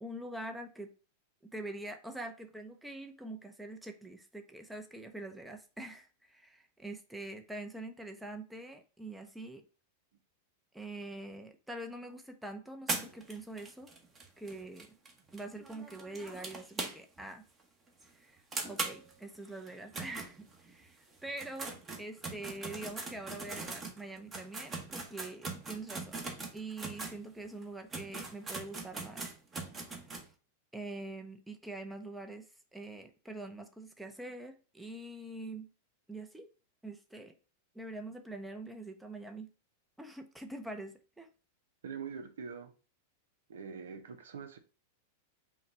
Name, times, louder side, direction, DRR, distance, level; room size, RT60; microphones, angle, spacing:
voice 1, 0.0-0.9 1.4-9.6 10.7-13.9 14.4-14.9 15.3-17.4 18.1-18.4 18.7-26.2 26.5-29.2 30.7-35.7 36.1-36.5 36.8-37.3 37.7-39.5 40.0-41.3, right 2 dB, 5° right, 0.6 m, -44 dB
sound 1, 12.9-17.3 17.6-17.7 18.0-18.1 18.5-20.8 21.3-27.2 27.6-27.7 27.9-30.3, right 3 dB, 20° right, 1.0 m, -41 dB
voice 2, 41.8-42.7 43.5-44.6, right 6 dB, 85° right, 0.7 m, -43 dB
5.6 x 2.3 x 4.1 m
hypercardioid pair, 120°, 0 cm